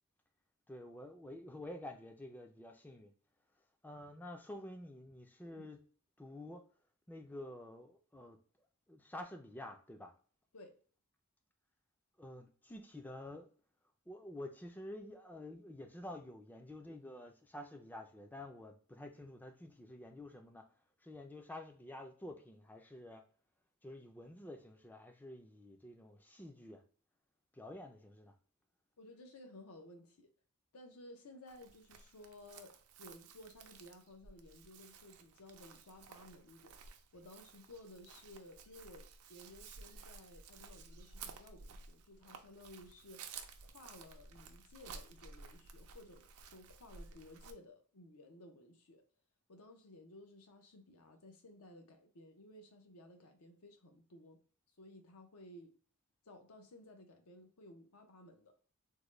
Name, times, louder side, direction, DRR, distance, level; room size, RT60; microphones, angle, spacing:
voice 1, 0.7-3.1 3.8-5.8 6.2-6.6 7.1-8.4 8.9-10.1 12.2-13.5 14.1-20.7 21.0-23.2 23.8-26.8 27.5-28.3, left 1 dB, 10° left, 0.3 m, -49 dB
voice 2, 29.0-30.3 30.7-36.8 37.1-49.0 49.5-54.4 54.8-55.7 56.2-58.5, left 1 dB, 80° left, 0.7 m, -56 dB
Chirp tweet, 31.5-47.5, right 5 dB, 75° right, 0.4 m, -54 dB
3.6 x 2.1 x 3.1 m
head